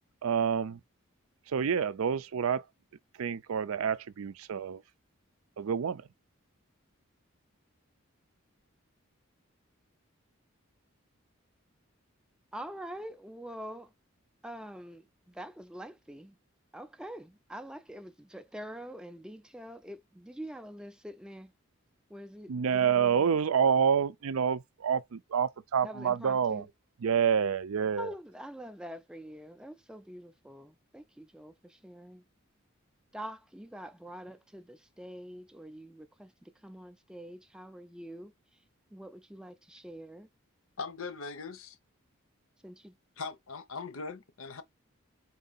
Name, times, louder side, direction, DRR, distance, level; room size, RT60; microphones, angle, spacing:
voice 1, 0.2-0.8 1.5-2.6 3.2-4.8 5.6-6.0 22.5-26.7 27.0-28.1, right 7 dB, 80° right, 0.4 m, -28 dB
voice 2, 12.5-13.9 14.4-16.3 16.7-21.5 22.1-23.3 25.8-26.7 27.9-32.2 33.1-36.3 36.6-38.3 38.9-40.3 42.6-42.9, equal, 5° right, 0.3 m, -45 dB
voice 3, 40.8-41.8 43.2-44.6, left 4 dB, 75° left, 0.7 m, -40 dB
4.5 x 2.6 x 4.0 m
head